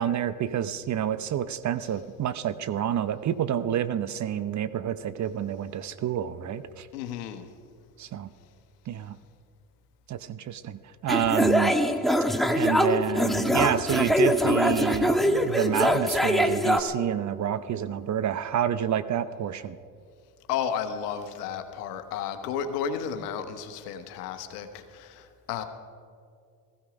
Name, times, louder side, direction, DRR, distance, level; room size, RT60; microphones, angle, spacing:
voice 1, 0.0-6.9 8.0-8.3 8.9-9.2 10.1-11.8 12.5-19.8, right 10 dB, 40° right, 14 dB, 0.8 m, -28 dB
voice 2, 6.9-7.5 20.5-25.6, left 8 dB, 80° left, 8 dB, 1.3 m, -33 dB
sound 1, 11.1-16.8, equal, ahead, 0.9 m, -23 dB
15.5 x 15.0 x 5.1 m, 2.3 s
hypercardioid pair, 70°, 46 cm